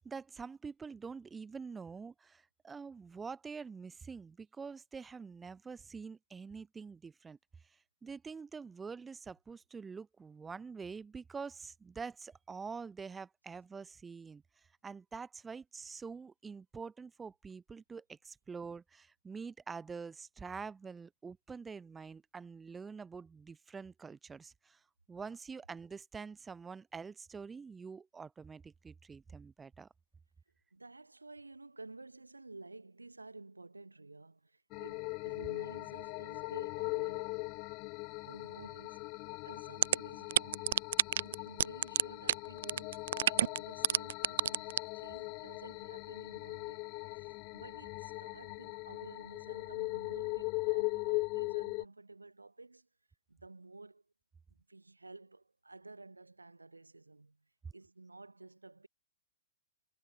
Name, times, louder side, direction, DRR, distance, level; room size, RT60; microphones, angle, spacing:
voice 1, 0.0-7.4 8.0-14.4 14.8-24.8 25.1-29.9, right 5 dB, 10° right, 3.3 m, -46 dB
voice 2, 30.7-37.4 38.2-40.8 41.2-46.9 47.1-52.9 53.3-54.0 54.5-57.4 57.7-58.9, right 3 dB, 80° right, 5.6 m, -53 dB
sound 1, 34.7-51.8, left 29 dB, 35° left, 2.8 m, -40 dB
sound 2, 39.8-39.9 40.3-41.3 41.6-42.0 42.3-42.4 42.6-43.6 43.8-44.8, right 11 dB, 55° right, 0.4 m, -26 dB
figure-of-eight pair, 110°, 0 cm